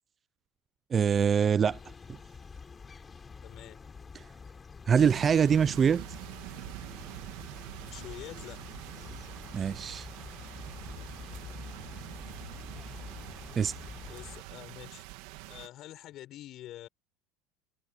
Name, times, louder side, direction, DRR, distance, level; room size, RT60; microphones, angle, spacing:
voice 1, 0.9-1.8 4.1-4.2 4.9-6.0 9.5-10.1 13.6-13.7, right 7 dB, 20° right, 0.4 m, -24 dB
sound 1, 1.6-14.4, left 5 dB, 15° left, 4.0 m, -47 dB
voice 2, 3.4-3.8 7.8-8.6 14.1-15.0 15.5-16.9, left 14 dB, 40° left, 6.5 m, -46 dB
sound 2, 4.9-15.7, right 19 dB, 70° right, 2.6 m, -45 dB
cardioid pair, 160°, 0 cm